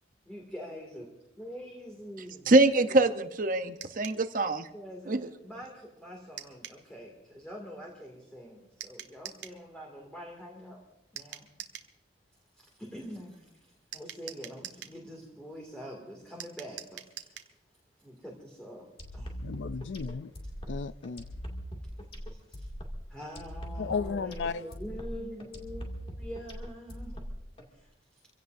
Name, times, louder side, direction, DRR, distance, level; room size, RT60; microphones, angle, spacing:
voice 1, 0.3-1.1 1.4-2.6 4.7-5.1 5.4-10.9 11.1-11.5 12.6-13.4 13.9-17.4 18.0-19.4 22.1-22.7 23.1-27.2 27.7-28.2, equal, 5° left, 2.3 m, -45 dB
voice 2, 2.5-4.7 5.1-5.2, right 2 dB, 45° right, 0.8 m, -24 dB
sound 1, 3.8-4.2 6.4-6.8 8.8-9.6 11.2-11.9 13.9-15.0 16.4-17.5, right 10 dB, 80° right, 1.4 m, -44 dB
sound 2, 19.0-27.6, equal, 30° left, 2.3 m, -40 dB
voice 3, 19.4-20.3 20.7-21.3 23.8-24.6, left 5 dB, 75° left, 0.4 m, -34 dB
25.5 x 16.5 x 2.6 m
head